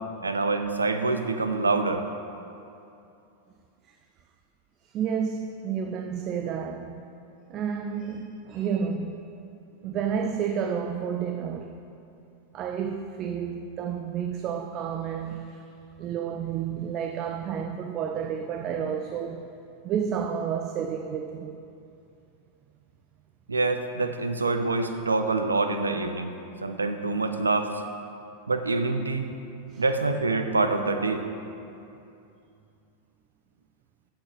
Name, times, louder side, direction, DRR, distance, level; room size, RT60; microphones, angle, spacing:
voice 1, 0.2-2.0 23.5-26.3 26.6-27.7 28.5-29.3 29.8-31.2, right 3 dB, 75° right, 0.6 m, -26 dB
voice 2, 4.8-7.1 7.5-9.3 9.8-11.8 12.5-15.7 16.0-19.5 19.8-21.6 29.6-29.8, right 7 dB, 35° right, 0.5 m, -31 dB
7.5 x 7.2 x 7.2 m
figure-of-eight pair, 90°, 0 cm